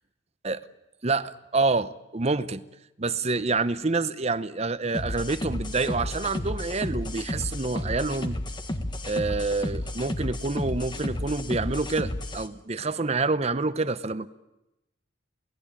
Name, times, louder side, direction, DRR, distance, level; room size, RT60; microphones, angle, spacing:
voice 1, 1.0-2.6 3.0-8.4 9.0-14.3, right 3 dB, 35° right, 14 dB, 0.8 m, -27 dB
sound 1, 4.9-12.5, left 1 dB, 25° left, 1.5 m, -32 dB
28.0 x 18.0 x 8.9 m, 0.94 s
head